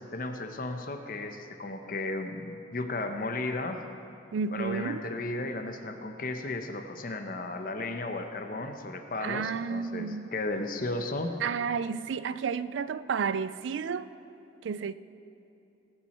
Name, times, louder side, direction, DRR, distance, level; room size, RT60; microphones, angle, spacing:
voice 1, 0.0-3.8 4.5-11.4, left 2 dB, 50° left, 6 dB, 0.8 m, -34 dB
voice 2, 4.3-5.0 9.2-10.3 11.4-14.1 14.6-14.9, right 6 dB, 85° right, 15 dB, 0.4 m, -31 dB
19.5 x 7.4 x 4.3 m, 2.8 s
head